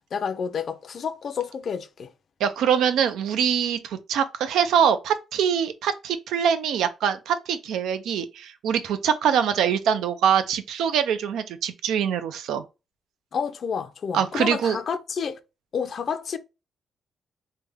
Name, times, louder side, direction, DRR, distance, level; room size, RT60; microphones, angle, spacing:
voice 1, 0.1-2.1 13.3-15.4 15.7-16.4, left 6 dB, 50° left, 0.4 m, -29 dB
voice 2, 2.4-12.6 14.1-14.8, right 8 dB, 85° right, 0.4 m, -24 dB
3.3 x 2.1 x 3.4 m
cardioid pair, 110°, 0 cm